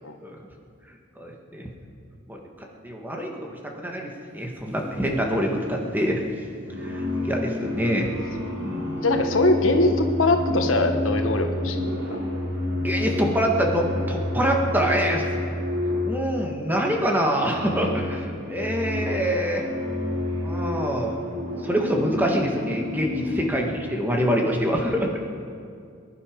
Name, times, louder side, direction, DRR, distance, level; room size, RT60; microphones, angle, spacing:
voice 1, 1.2-1.6 2.3-2.4 2.8-6.2 6.8-8.1 8.6-9.0 12.8-15.2 16.0-19.6 20.4-21.1 21.6-25.2, equal, 10° right, 0 dB, 1.8 m, -25 dB
sound 1, 6.6-16.7 17.2-23.8, left 1 dB, 90° right, 3.8 m, -29 dB
voice 2, 9.0-11.8 12.1-12.2, left 2 dB, 90° left, 5 dB, 1.3 m, -22 dB
24.0 x 11.0 x 5.3 m, 2.3 s
head